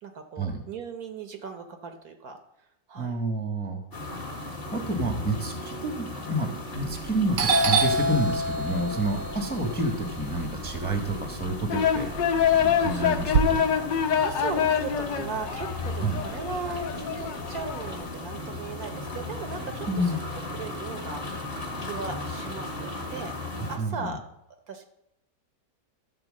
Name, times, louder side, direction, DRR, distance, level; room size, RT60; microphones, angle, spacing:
voice 1, 0.0-2.4 2.9-3.2 8.9-9.2 12.9-13.0 14.2-20.2 20.5-21.4 21.8-23.4 23.7-24.3 24.7-24.8, right 5 dB, 60° right, 7 dB, 1.3 m, -37 dB
voice 2, 3.0-3.8 4.7-13.6 16.0-16.2 19.9-20.2 23.8-24.2, right 1 dB, 5° left, 4 dB, 1.0 m, -29 dB
sound 1, 3.9-23.8, left 2 dB, 35° left, 1.6 m, -37 dB
Doorbell, 6.8-7.1 7.4-11.5 11.9-13.4, right 3 dB, 80° right, 1.6 m, -26 dB
sound 2, 11.7-18.1, left 8 dB, 85° left, 1.5 m, -26 dB
12.5 x 4.5 x 7.4 m, 0.85 s
omnidirectional pair, 1.9 m